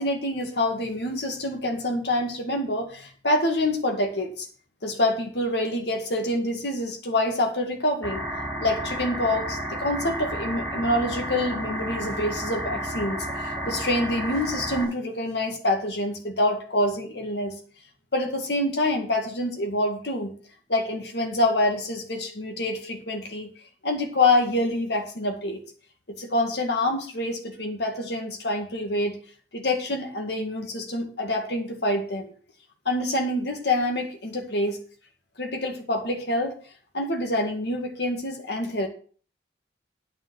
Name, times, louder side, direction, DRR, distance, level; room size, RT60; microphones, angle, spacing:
voice 1, 0.0-4.5 4.8-8.2 8.6-17.5 18.1-20.3 20.7-23.5 23.8-25.6 26.1-29.2 29.5-32.3 32.9-34.8 35.4-36.5 36.9-38.9, left 1 dB, 65° left, 3 dB, 2.1 m, -26 dB
sound 1, 8.0-14.8, right 1 dB, 10° left, 4.4 m, -32 dB
9.2 x 5.6 x 7.8 m, 0.43 s
head